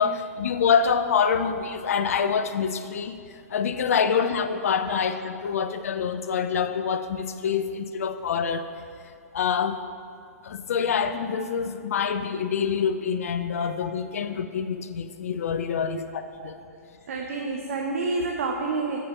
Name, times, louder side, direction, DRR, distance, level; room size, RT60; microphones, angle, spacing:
voice 1, 0.0-3.2 3.5-8.7 9.3-9.8 10.4-16.6, left 6 dB, 65° left, 10 dB, 0.5 m, -26 dB
voice 2, 15.7-16.0 16.4-16.8 17.1-19.0, right 3 dB, 60° right, 1 dB, 0.7 m, -30 dB
6.9 x 5.1 x 5.3 m, 2.3 s
figure-of-eight pair, 115°, 9 cm